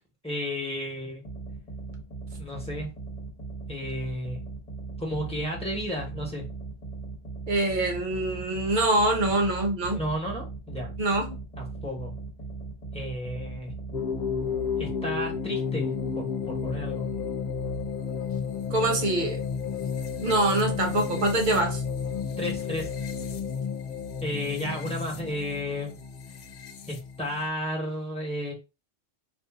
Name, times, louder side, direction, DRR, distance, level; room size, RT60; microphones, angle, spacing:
voice 1, 0.2-1.2 2.4-2.9 3.7-4.4 5.0-6.4 9.9-10.9 11.6-12.1 12.9-13.7 14.8-17.0 22.4-22.9 24.2-25.9 26.9-28.5, equal, 5° left, 1.2 m, -33 dB
sound 1, 1.2-14.9, right 3 dB, 35° left, 1.2 m, -39 dB
voice 2, 7.5-10.0 11.0-11.4 18.7-19.4 20.2-21.8, right 2 dB, 45° right, 0.8 m, -24 dB
sound 2, 13.9-27.5, left 6 dB, 65° left, 0.7 m, -32 dB
2.6 x 2.5 x 3.6 m
omnidirectional pair, 1.3 m